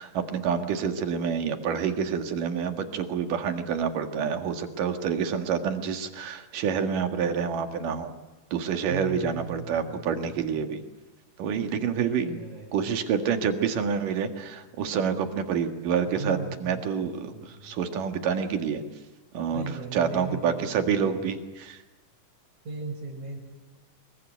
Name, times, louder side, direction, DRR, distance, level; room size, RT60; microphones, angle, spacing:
voice 1, 0.0-8.1 8.5-10.8 11.4-12.5 12.7-18.8 19.3-21.8, right 7 dB, 85° right, 6 dB, 3.5 m, -28 dB
voice 2, 8.9-10.5 12.0-12.9 16.1-17.8 19.5-21.3 22.6-23.4, right 3 dB, 65° right, -4 dB, 6.6 m, -38 dB
24.5 x 22.5 x 9.3 m, 1.1 s
omnidirectional pair, 3.7 m